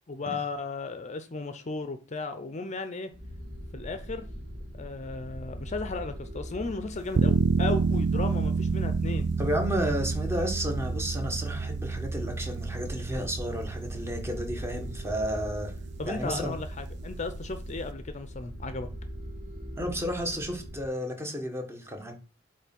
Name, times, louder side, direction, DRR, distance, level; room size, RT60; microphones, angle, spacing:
voice 1, 0.1-3.1 3.7-4.3 4.7-9.3 16.0-18.9, left 3 dB, 35° left, 0.6 m, -35 dB
sound 1, 3.1-20.9, equal, 40° right, 2.7 m, -41 dB
sound 2, 7.1-17.9, right 4 dB, 60° right, 0.4 m, -30 dB
voice 2, 9.4-15.7 16.0-16.6 19.8-22.1, equal, 15° right, 1.2 m, -32 dB
8.1 x 3.3 x 5.9 m
head